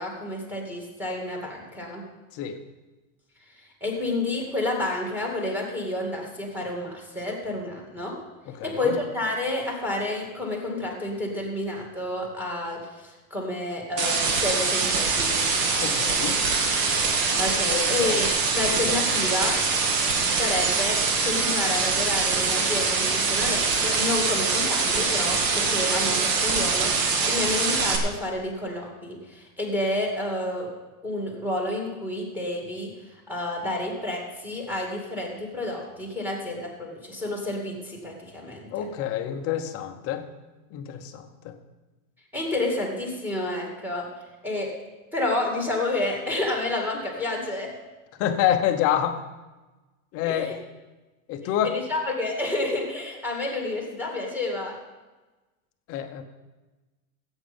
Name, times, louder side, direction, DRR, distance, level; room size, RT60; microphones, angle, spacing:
voice 1, 0.0-2.0 3.5-8.2 8.6-15.4 17.4-19.6 20.4-30.7 31.0-32.9 33.3-38.9 42.3-44.0 44.4-44.7 45.1-47.7 50.3-50.5 51.6-54.8, left 2 dB, 5° right, 0 dB, 2.3 m, -30 dB
voice 2, 8.5-9.0 15.8-16.4 17.7-18.2 38.7-40.2 40.7-41.5 48.2-49.2 50.1-50.6 51.3-51.7 55.9-56.2, left 10 dB, 30° left, 7 dB, 0.9 m, -27 dB
sound 1, 14.0-28.0, right 4 dB, 50° right, 2.0 m, -24 dB
15.5 x 8.3 x 5.4 m, 1.2 s
supercardioid pair, 155°, 45 cm